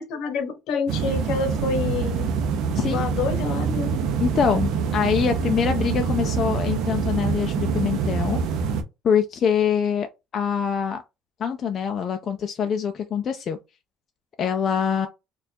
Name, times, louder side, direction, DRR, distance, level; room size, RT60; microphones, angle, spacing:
voice 1, 0.1-2.3 2.8-4.0, left 4 dB, 60° left, 0.8 m, -27 dB
sound 1, 0.9-8.8, right 6 dB, 65° right, 0.6 m, -25 dB
sound 2, 3.6-8.6, right 5 dB, 15° left, 1.2 m, -43 dB
voice 2, 4.2-8.4 9.0-10.1 10.3-11.0 11.4-13.6 14.4-15.1, left 7 dB, 35° left, 0.3 m, -24 dB
4.3 x 2.3 x 2.7 m
cardioid pair, 165°, 0 cm